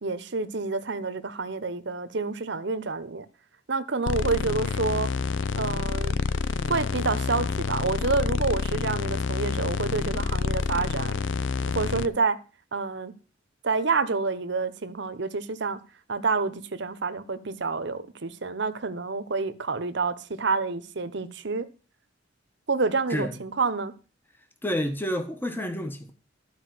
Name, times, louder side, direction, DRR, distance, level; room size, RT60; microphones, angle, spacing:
voice 1, 0.0-3.3 3.7-5.1 5.6-6.2 6.7-11.2 11.7-12.4 12.7-13.1 13.6-15.8 16.1-21.7 22.7-23.9, right 4 dB, 65° right, 1.0 m, -28 dB
sound 1, 4.1-12.1, left 4 dB, 75° left, 0.6 m, -28 dB
voice 2, 24.6-26.1, equal, 10° left, 1.2 m, -29 dB
12.5 x 5.0 x 7.6 m
head